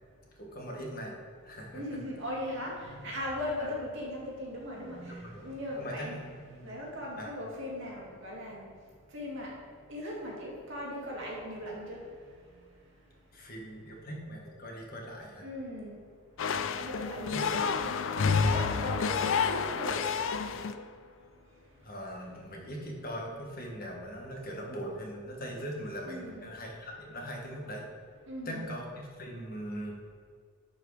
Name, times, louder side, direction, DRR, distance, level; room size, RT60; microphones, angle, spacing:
voice 1, 0.4-1.2 1.4-2.0 3.6-3.7 5.1-5.5 5.8-6.2 6.5-6.7 7.2-7.3 13.3-15.5 17.3-17.4 21.8-27.8 28.4-29.9, equal, 45° left, -1 dB, 1.5 m, -40 dB
voice 2, 1.7-6.2 6.6-8.7 9.1-9.5 9.9-12.0 15.4-16.0 16.7-20.1 26.0-26.5 28.3-28.7, left 1 dB, 55° right, -3 dB, 2.3 m, -38 dB
sound 1, 16.4-20.8, left 5 dB, 60° left, 0.4 m, -29 dB
11.0 x 4.8 x 4.9 m, 2.1 s
head